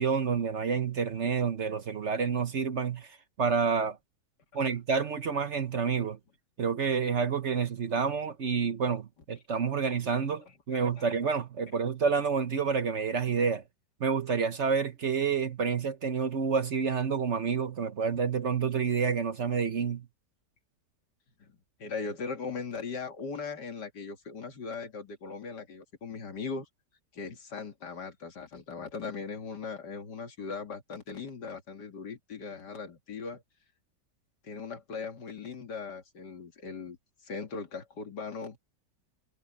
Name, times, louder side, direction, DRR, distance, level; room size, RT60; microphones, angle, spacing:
voice 1, 0.0-4.0 4.5-6.2 6.6-13.6 14.0-20.0, right 6 dB, 50° right, 1.1 m, -29 dB
voice 2, 10.7-11.0 21.4-26.7 27.1-33.4 34.4-37.0 37.2-38.6, left 5 dB, 80° left, 2.7 m, -39 dB
omnidirectional pair, 1.8 m